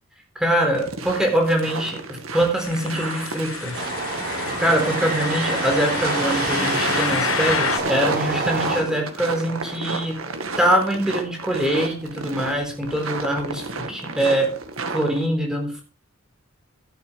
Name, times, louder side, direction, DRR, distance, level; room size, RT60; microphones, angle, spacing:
voice 1, 0.4-2.0 2.3-3.8 4.6-10.2 10.6-14.5 14.9-15.8, right 1 dB, 5° right, 2 dB, 3.9 m, -23 dB
sound 1, 0.7-15.3, right 3 dB, 90° right, 1.8 m, -33 dB
sound 2, 2.6-7.8, left 7 dB, 80° left, 1.1 m, -29 dB
sound 3, 3.7-8.8, right 3 dB, 50° right, 4.6 m, -26 dB
13.0 x 11.0 x 3.5 m, 0.33 s
head